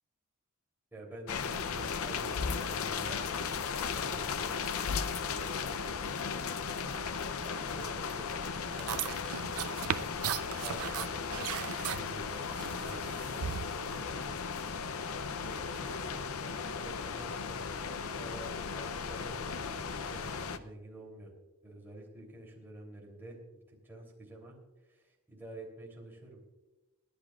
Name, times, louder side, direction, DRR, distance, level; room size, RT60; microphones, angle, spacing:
voice 1, 0.9-3.5 3.9-4.8 5.1-6.3 6.7-7.1 7.4-11.5 11.9-14.9 15.2-21.3 21.6-23.4 23.7-24.6 24.9-26.4, right 1 dB, 10° right, -2 dB, 3.2 m, -49 dB
sound 1, 1.3-20.6, left 5 dB, 70° left, 0.6 m, -36 dB
sound 2, 8.7-14.0, right 9 dB, 75° right, 0.5 m, -38 dB
29.0 x 10.5 x 2.4 m, 1.1 s
head